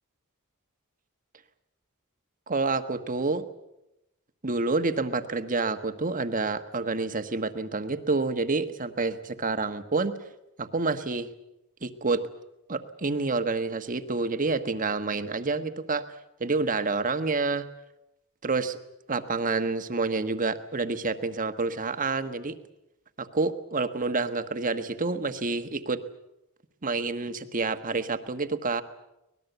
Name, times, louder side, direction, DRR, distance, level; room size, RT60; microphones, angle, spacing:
voice 1, 2.5-3.4 4.4-10.1 10.6-11.3 11.8-12.2 12.7-16.0 16.4-17.7 18.4-18.8 19.1-22.6 23.2-26.0 26.8-28.8, right 3 dB, 40° right, 9 dB, 1.4 m, -28 dB
25.0 x 19.5 x 8.1 m, 0.90 s
head